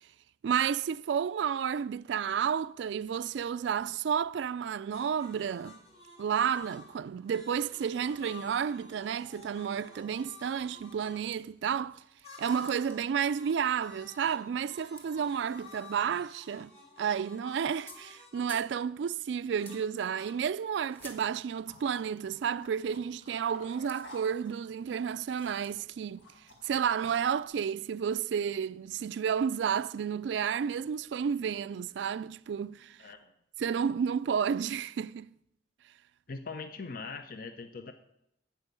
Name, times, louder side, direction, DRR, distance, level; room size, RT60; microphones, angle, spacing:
voice 1, 0.4-5.8 6.2-12.0 12.4-16.7 17.0-26.3 26.6-33.0 33.6-35.3, right 7 dB, 75° right, 0.3 m, -31 dB
sound 1, 4.9-11.2 12.2-13.1 13.3-18.7 19.6-20.3, left 4 dB, 35° left, 2.3 m, -51 dB
sound 2, 9.5-9.6 9.9-10.0 10.3-12.2 12.5-13.1 14.5-14.6 14.8-16.6 16.9-17.2 17.6-18.1 18.5-18.7 19.6-19.9 20.2-21.3 22.0-22.1 23.7-26.0, equal, 10° left, 1.2 m, -55 dB
sound 3, 21.0-27.4, left 1 dB, 85° left, 2.2 m, -55 dB
voice 2, 33.0-33.3 36.3-37.9, left 4 dB, 50° left, 0.6 m, -41 dB
13.0 x 4.6 x 8.2 m
head